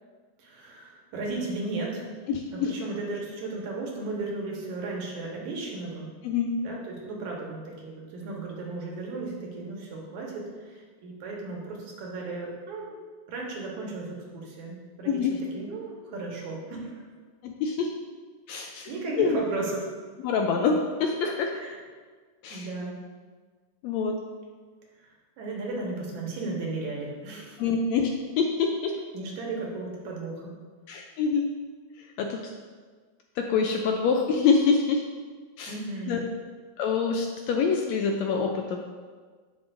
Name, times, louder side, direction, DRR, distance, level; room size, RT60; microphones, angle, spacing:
voice 1, 0.4-2.1 2.5-6.1 6.6-12.9 13.3-17.0 18.9-19.8 21.5-21.8 22.5-23.0 25.0-27.6 29.1-30.5 35.7-36.2, right 3 dB, 75° right, -2 dB, 2.5 m, -35 dB
voice 2, 2.3-2.7 6.2-6.5 15.1-15.4 17.4-17.9 18.5-18.9 19.2-19.4 20.2-21.5 22.4-22.7 23.8-24.1 27.6-28.9 30.9-31.5 32.0-32.4 33.4-35.0 35.6-35.7 36.1-36.3 36.8-38.8, left 5 dB, 80° left, 2 dB, 1.6 m, -25 dB
8.8 x 7.4 x 2.5 m, 1.5 s
omnidirectional pair, 3.5 m